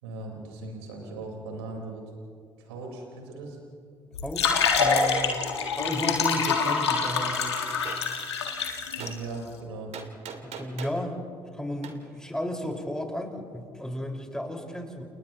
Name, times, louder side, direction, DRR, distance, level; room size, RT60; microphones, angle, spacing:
voice 1, 0.0-2.0 2.6-3.6 9.0-9.9, right 3 dB, 80° right, 0 dB, 4.3 m, -38 dB
sound 1, 4.1-9.1, left 5 dB, 90° left, 1.7 m, -26 dB
voice 2, 4.2-5.5 5.7-7.6 10.4-11.3 11.5-15.0, left 1 dB, 5° left, 1 dB, 4.9 m, -33 dB
Gunshot gunfire, 7.8-8.0 9.0-9.2 9.9-11.0 11.8-12.0, right 7 dB, 55° right, 2.3 m, -39 dB
30.0 x 30.0 x 3.0 m, 2.3 s
hypercardioid pair, 50°, 14 cm